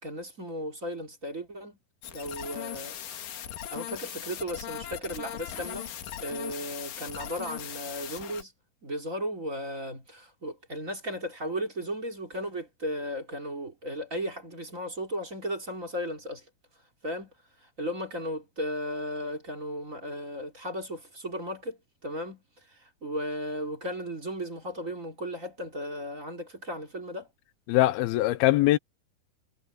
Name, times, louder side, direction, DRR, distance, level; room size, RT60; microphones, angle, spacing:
voice 1, 0.0-1.8 2.0-3.0 3.7-5.9 6.2-8.5 8.8-16.5 17.0-17.3 17.6-27.3, equal, 20° right, 3.1 m, -35 dB
sound 1, 2.0-8.4, left 11 dB, 65° left, 3.1 m, -39 dB
voice 2, 27.7-28.8, left 16 dB, 80° left, 2.5 m, -22 dB
omnidirectional pair, 4.5 m